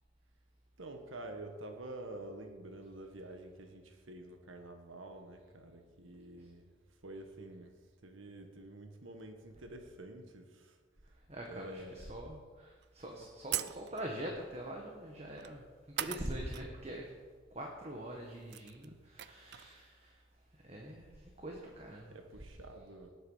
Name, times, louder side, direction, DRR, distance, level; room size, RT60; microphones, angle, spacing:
voice 1, 0.8-6.7 7.0-7.8 8.0-10.8 11.5-12.0 16.4-16.7 22.1-23.1, right 1 dB, 85° right, 5 dB, 1.5 m, -48 dB
voice 2, 11.0-15.6 16.0-17.1 17.5-22.4, right 1 dB, 30° right, 0 dB, 1.4 m, -44 dB
sound 1, 12.8-12.9 13.5-14.2 15.4-15.6 16.0-16.7 17.0-17.1 18.0-18.1 18.3-19.8, right 12 dB, 55° right, 0.4 m, -40 dB
18.5 x 8.1 x 5.6 m, 1.5 s
head